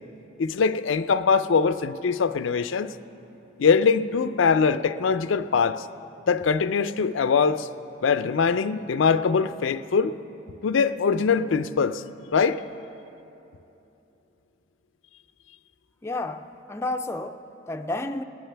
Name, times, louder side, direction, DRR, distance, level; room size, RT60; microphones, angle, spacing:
voice 1, 0.4-2.9 3.6-5.8 6.3-7.7 8.0-10.2 10.6-12.0 12.3-12.6, left 5 dB, 90° left, 0.4 m, -22 dB
voice 2, 16.0-18.2, left 2 dB, 15° left, 0.4 m, -31 dB
20.5 x 18.5 x 3.4 m
head